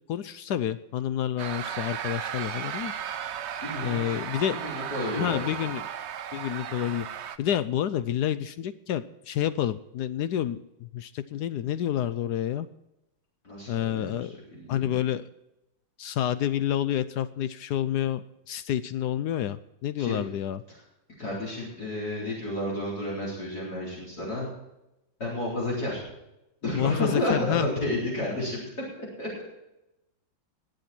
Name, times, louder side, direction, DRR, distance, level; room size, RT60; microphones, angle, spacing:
voice 1, 0.1-2.9 3.8-4.6 5.1-5.8 6.3-7.1 7.4-12.7 13.7-14.4 14.7-15.3 16.0-20.6 26.8-27.7, left 11 dB, 70° left, 13 dB, 1.0 m, -29 dB
sound 1, 1.4-7.4, right 9 dB, 75° right, 0.6 m, -35 dB
voice 2, 3.6-4.2 4.6-5.4 6.6-6.9 13.4-15.0 20.0-20.2 21.2-24.5 25.2-26.0 26.6-28.7 29.0-29.3, left 1 dB, 50° left, -5 dB, 4.6 m, -31 dB
21.0 x 8.0 x 4.4 m, 0.90 s
omnidirectional pair, 2.0 m